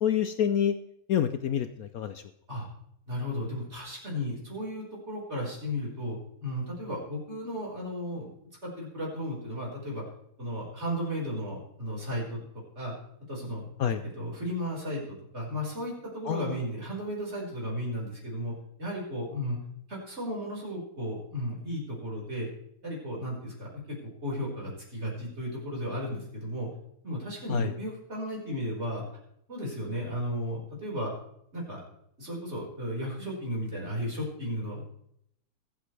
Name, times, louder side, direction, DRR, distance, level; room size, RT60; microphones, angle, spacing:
voice 1, 0.0-0.7 1.1-2.1 13.8-14.0 16.3-16.4 27.5-27.7, left 9 dB, 80° left, 10 dB, 0.8 m, -27 dB
voice 2, 3.1-8.3 8.6-10.0 10.4-12.4 12.7-12.9 13.3-13.7 14.0-18.5 18.8-19.6 19.9-22.5 22.8-24.0 24.2-26.7 27.0-29.0 29.5-31.1 31.5-31.8 32.2-34.9, equal, 30° right, -4 dB, 5.0 m, -34 dB
22.0 x 8.6 x 3.3 m, 0.73 s
omnidirectional pair, 2.3 m